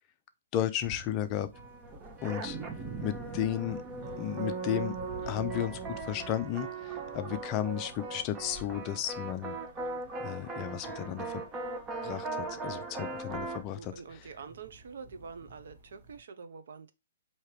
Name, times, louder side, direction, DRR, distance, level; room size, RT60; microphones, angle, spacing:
voice 1, 0.5-1.5 2.2-2.6 3.0-3.8 4.2-5.0 5.3-9.5 10.2-11.4 12.0-13.8, left 11 dB, 25° left, 0.4 m, -33 dB
sound 1, 0.8-16.2, right 1 dB, 40° right, 1.7 m, -50 dB
sound 2, 1.5-13.6, right 3 dB, 20° right, 0.6 m, -39 dB
voice 2, 13.8-16.9, right 5 dB, 65° right, 0.7 m, -46 dB
4.5 x 2.8 x 3.2 m
hypercardioid pair, 160°, 0 cm